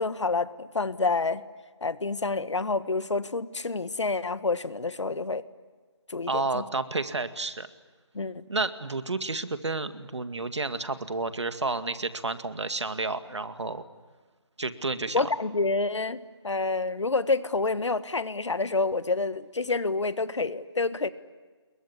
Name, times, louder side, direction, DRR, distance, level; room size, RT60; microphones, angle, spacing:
voice 1, 0.0-1.4 1.8-5.4 6.1-6.6 8.1-8.5 15.1-21.1, left 3 dB, 80° left, 14 dB, 1.4 m, -28 dB
voice 2, 6.3-7.7 8.5-13.8 14.6-15.2, right 3 dB, 75° right, 10 dB, 2.1 m, -31 dB
28.0 x 22.5 x 9.6 m, 1.4 s
figure-of-eight pair, 180°, 15 cm